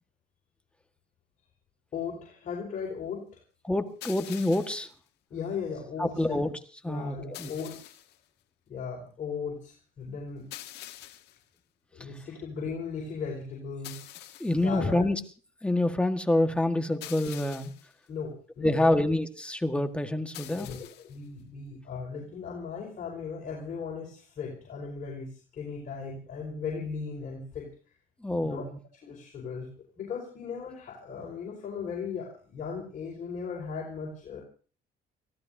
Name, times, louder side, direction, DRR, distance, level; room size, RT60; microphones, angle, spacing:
voice 1, 1.9-3.3 5.3-6.4 6.8-7.9 8.7-10.5 11.9-14.1 14.5-15.1 18.1-19.0 20.4-27.7 28.4-28.6 29.0-29.7 30.0-34.4, left 5 dB, 50° left, -2 dB, 5.0 m, -37 dB
voice 2, 3.6-4.9 6.0-6.5 6.8-7.5 12.0-12.1 14.4-15.2 15.6-17.7 18.6-20.7 28.2-28.8, left 1 dB, 5° left, 7 dB, 1.6 m, -27 dB
sound 1, 4.0-4.9 7.3-8.2 10.5-11.4 13.8-14.7 17.0-17.9 20.3-21.2, left 13 dB, 80° left, 1.4 m, -45 dB
30.0 x 16.0 x 2.8 m, 0.40 s
cardioid pair, 110°, 17 cm